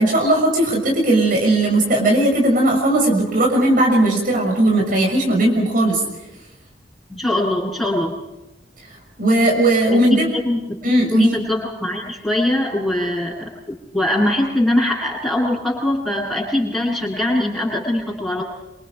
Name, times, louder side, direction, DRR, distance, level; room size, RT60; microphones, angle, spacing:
voice 1, 0.0-6.0 9.2-10.2 10.8-11.3, right 1 dB, 50° right, 0 dB, 6.7 m, -17 dB
voice 2, 7.1-8.1 9.9-10.8 11.1-18.4, left 1 dB, 5° left, -8 dB, 7.9 m, -22 dB
28.0 x 27.5 x 5.1 m, 0.97 s
head